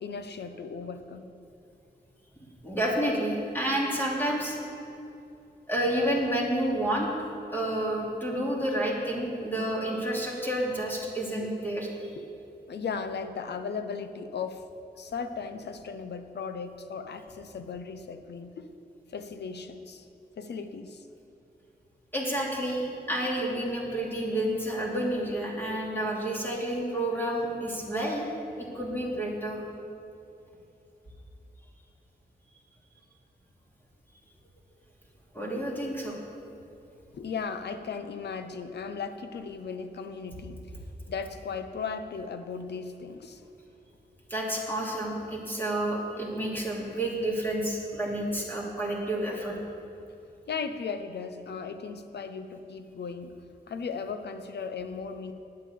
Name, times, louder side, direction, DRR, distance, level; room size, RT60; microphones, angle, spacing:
voice 1, 0.0-1.3 12.2-12.3 12.7-14.6 14.9-18.6 19.1-20.1 20.4-21.1 37.1-40.6 41.1-43.4 50.5-53.3 53.7-55.3, left 5 dB, 85° left, 9 dB, 0.8 m, -36 dB
voice 2, 2.6-4.6 5.7-7.1 7.5-12.1 22.1-28.3 28.7-29.6 35.3-36.2 44.3-49.6, right 1 dB, 10° left, -3 dB, 2.7 m, -30 dB
9.8 x 8.4 x 8.5 m, 2.8 s
wide cardioid pair, 100°, 17 cm